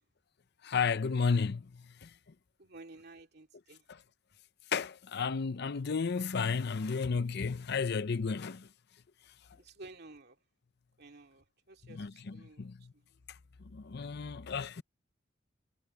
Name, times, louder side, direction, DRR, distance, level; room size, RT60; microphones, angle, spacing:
voice 1, 0.6-2.1 3.9-4.0 4.7-8.7 11.9-12.8 13.7-14.8, left 5 dB, 60° left, 0.6 m, -33 dB
voice 2, 2.6-3.8 9.6-10.4 11.0-12.7, right 2 dB, 55° right, 2.5 m, -53 dB
head